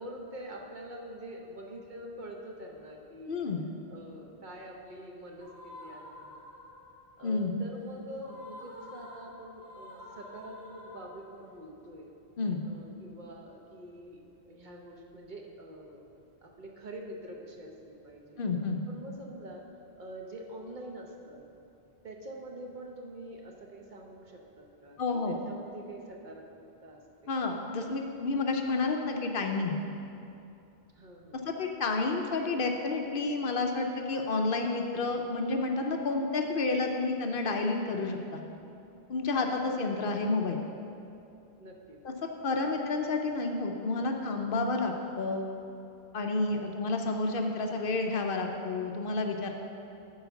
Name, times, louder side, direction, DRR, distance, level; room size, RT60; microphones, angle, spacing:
voice 1, 0.0-3.4 3.9-6.4 7.2-12.1 12.6-16.1 16.4-18.4 18.9-19.6 20.0-21.4 22.0-27.6 30.9-31.4 41.6-42.0 42.6-42.8 46.6-46.7, right 1 dB, 50° right, 0 dB, 0.9 m, -45 dB
voice 2, 3.3-3.7 7.2-7.5 12.4-12.6 18.4-18.8 25.0-25.4 27.3-29.8 31.4-38.4 39.1-40.6 42.4-45.4 46.1-49.5, left 3 dB, 60° left, 3 dB, 0.8 m, -30 dB
sound 1, 5.4-7.1 8.1-11.5, left 1 dB, 35° right, 2.0 m, -49 dB
7.9 x 4.8 x 7.0 m, 2.7 s
omnidirectional pair, 1.1 m